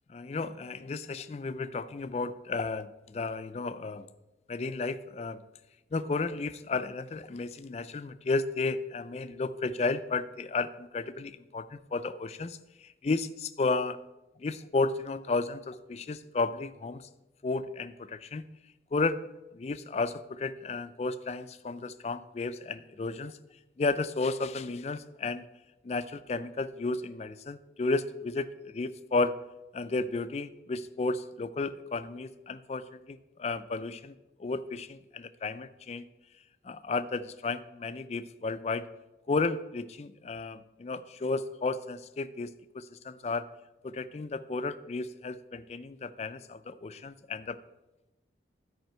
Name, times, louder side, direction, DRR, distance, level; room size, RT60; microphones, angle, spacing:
voice 1, 0.1-4.1 4.5-5.4 5.9-14.0 14.4-17.1 17.4-18.5 18.9-19.2 19.5-23.4 23.8-25.4 25.8-29.4 29.7-34.1 34.4-36.0 36.6-38.9 39.3-43.5 43.8-47.6, left 3 dB, 35° left, 12 dB, 0.4 m, -33 dB
12.0 x 5.0 x 4.5 m, 1.0 s
head